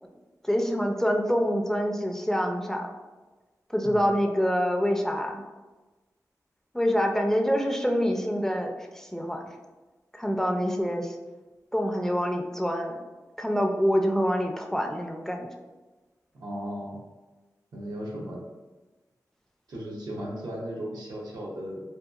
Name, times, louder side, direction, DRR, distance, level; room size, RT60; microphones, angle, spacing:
voice 1, 0.4-2.9 3.7-5.4 6.7-9.4 10.1-11.2 11.7-13.0 13.4-15.5, equal, 5° left, 2 dB, 0.3 m, -26 dB
voice 2, 3.8-4.2 16.3-17.0 17.7-18.4 19.7-21.8, equal, 85° right, -3 dB, 0.6 m, -36 dB
2.8 x 2.2 x 2.3 m, 1.2 s
cardioid pair, 50°, 7 cm